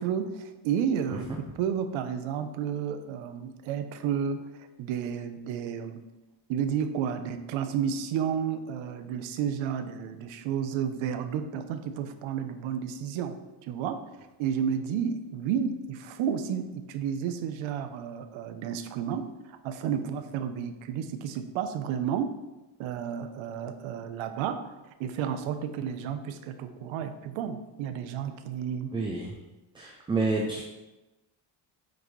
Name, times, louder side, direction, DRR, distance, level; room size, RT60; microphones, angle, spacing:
voice 1, 0.0-6.0 6.5-13.4 13.6-22.3 22.8-24.7 25.0-28.9, right 8 dB, 85° right, 9 dB, 0.9 m, -31 dB
voice 2, 28.9-29.3 29.7-30.6, right 3 dB, 10° right, -1 dB, 0.4 m, -29 dB
8.7 x 6.3 x 3.2 m, 1.0 s
cardioid pair, 180°, 46 cm